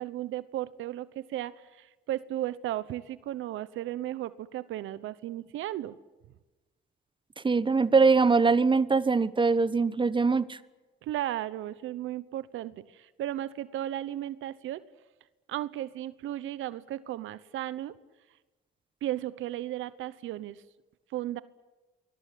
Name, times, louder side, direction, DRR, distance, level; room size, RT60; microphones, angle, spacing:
voice 1, 0.0-6.0 11.0-14.8 15.5-17.9 19.0-20.6 21.1-21.4, right 13 dB, 85° right, 16 dB, 1.0 m, -35 dB
voice 2, 7.4-10.6, right 4 dB, 25° right, 16 dB, 1.2 m, -22 dB
25.0 x 20.5 x 9.4 m, 1.2 s
cardioid pair, 90°, 20 cm